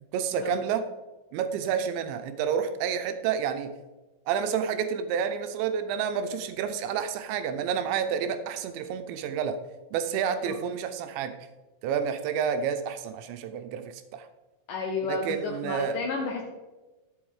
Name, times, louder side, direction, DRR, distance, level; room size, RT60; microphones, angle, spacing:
voice 1, 0.1-0.8 1.3-3.7 4.3-9.6 9.9-11.4 11.8-14.3 15.1-16.0, right 7 dB, 80° right, 9 dB, 2.8 m, -29 dB
voice 2, 14.7-16.4, left 4 dB, 85° left, 0 dB, 1.9 m, -32 dB
11.5 x 7.8 x 4.9 m, 1.2 s
omnidirectional pair, 5.5 m